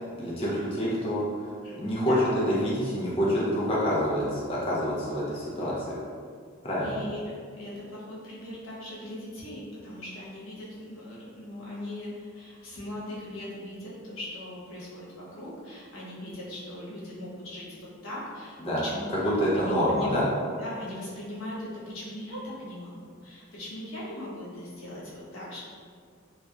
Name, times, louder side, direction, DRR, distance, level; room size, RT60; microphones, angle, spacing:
voice 1, 0.2-1.2 1.8-2.2 2.5-6.0 6.6-7.0 18.6-18.8 19.1-20.3, equal, 30° left, -7 dB, 0.4 m, -27 dB
voice 2, 1.6-2.3 6.8-20.1 20.6-21.7 21.9-25.6, left 1 dB, 85° left, -7 dB, 0.8 m, -39 dB
2.7 x 2.2 x 2.2 m, 2.1 s
head